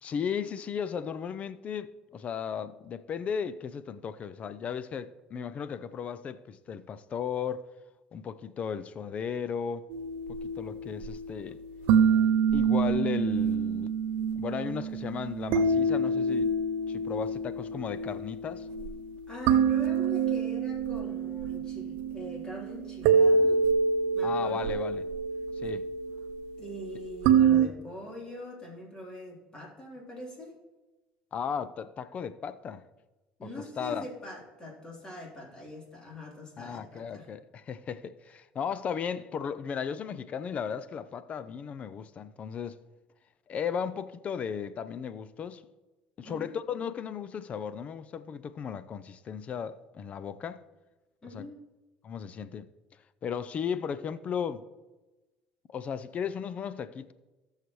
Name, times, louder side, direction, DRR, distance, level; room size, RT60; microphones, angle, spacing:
voice 1, 0.0-7.7 8.1-9.9 10.3-11.6 12.5-14.0 14.4-16.5 16.9-18.7 24.2-25.0 25.6-25.9 31.3-32.8 33.4-33.5 33.8-34.0 36.6-42.8 43.5-45.6 46.2-50.6 51.3-51.4 52.0-52.7 53.2-54.6 55.7-57.1, left 7 dB, 40° left, 0.5 m, -35 dB
sound 1, 9.9-27.7, right 5 dB, 75° right, 0.6 m, -27 dB
voice 2, 19.3-23.6 24.1-24.8 26.6-30.6 33.4-37.3 46.2-46.5 51.2-51.6, left 1 dB, 25° left, 3.6 m, -43 dB
17.0 x 6.6 x 3.1 m
supercardioid pair, 105°, 4 cm